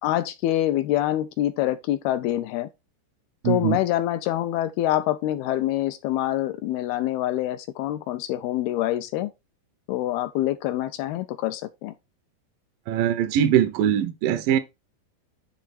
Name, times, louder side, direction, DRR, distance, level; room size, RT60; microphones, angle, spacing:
voice 1, 0.0-2.7 3.5-9.3 9.9-11.9, left 14 dB, 80° left, 2.3 m, -25 dB
voice 2, 3.4-3.8 12.9-14.6, right 10 dB, 85° right, 1.9 m, -22 dB
10.5 x 3.6 x 4.1 m
omnidirectional pair, 5.0 m